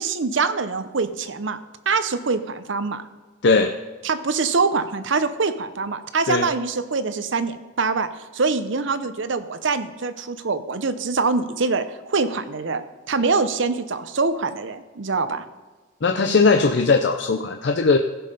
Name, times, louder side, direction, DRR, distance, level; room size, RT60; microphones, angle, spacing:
voice 1, 0.0-1.6 1.9-3.0 4.0-15.4, right 4 dB, 65° right, 12 dB, 0.7 m, -24 dB
voice 2, 3.4-3.7 6.3-6.5 16.0-18.0, left 4 dB, 60° left, 6 dB, 0.6 m, -18 dB
16.0 x 5.5 x 5.3 m, 1.3 s
head